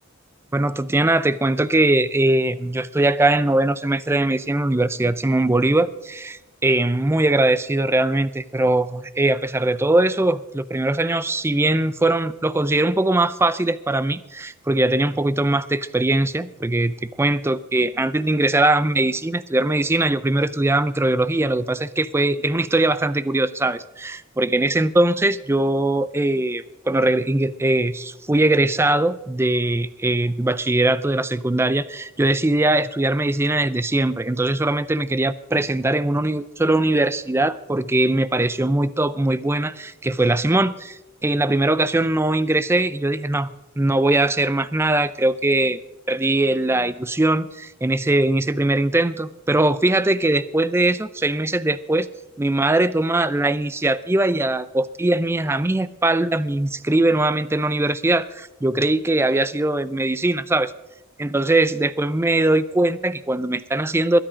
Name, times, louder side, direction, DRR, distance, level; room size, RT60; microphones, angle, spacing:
voice 1, 0.5-43.5 43.8-45.8 46.1-52.1 52.4-60.7 61.2-64.2, right 2 dB, 10° right, 16 dB, 0.4 m, -21 dB
22.0 x 10.0 x 5.0 m, 1.0 s
head